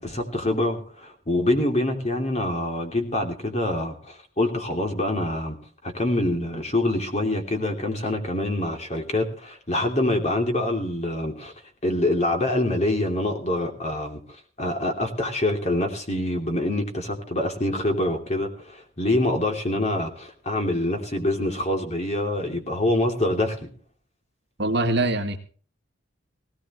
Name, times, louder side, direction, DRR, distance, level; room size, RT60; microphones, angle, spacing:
voice 1, 0.0-5.6 5.8-11.5 11.8-14.2 14.6-23.7, left 1 dB, 35° left, 3 dB, 2.9 m, -25 dB
voice 2, 24.6-25.4, right 2 dB, 55° right, 6 dB, 1.9 m, -23 dB
18.0 x 18.0 x 3.1 m, 0.42 s
head